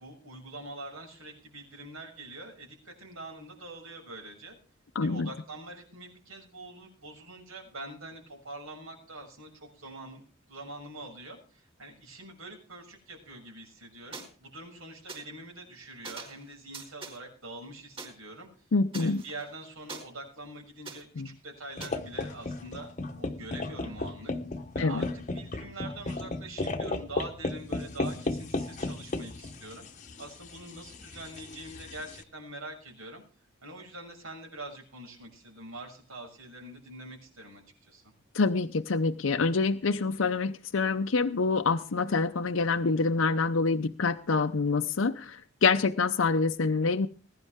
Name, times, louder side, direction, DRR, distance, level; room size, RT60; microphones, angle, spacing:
voice 1, 0.0-4.6 5.0-10.2 10.5-18.5 19.0-24.3 24.7-33.2 33.6-38.1, right 2 dB, 85° right, 1 dB, 6.7 m, -44 dB
voice 2, 4.9-5.3 18.7-19.2 21.2-21.3 24.8-25.0 38.3-47.1, left 4 dB, 70° left, 7 dB, 0.6 m, -26 dB
sound 1, 14.1-14.3 15.1-15.2 16.0-16.4 16.7-17.2 18.0-18.1 18.9-20.0 20.9-21.0 21.8-21.9, right 4 dB, 25° right, 4.9 m, -42 dB
sound 2, 21.8-32.2, left 2 dB, 35° left, 0.9 m, -35 dB
20.5 x 11.0 x 3.6 m, 0.40 s
head